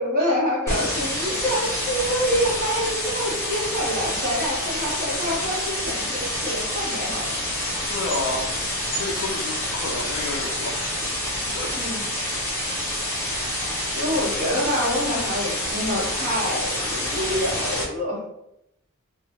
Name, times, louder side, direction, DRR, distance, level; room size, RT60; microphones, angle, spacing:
voice 1, 0.0-7.4 11.7-12.0 13.9-18.2, equal, 40° right, -5 dB, 1.1 m, -26 dB
sound 1, 0.7-17.8, left 1 dB, 10° left, 0.7 m, -27 dB
voice 2, 7.9-10.9 11.5-11.7, left 2 dB, 55° left, -1 dB, 0.4 m, -31 dB
2.8 x 2.0 x 2.9 m, 0.81 s
head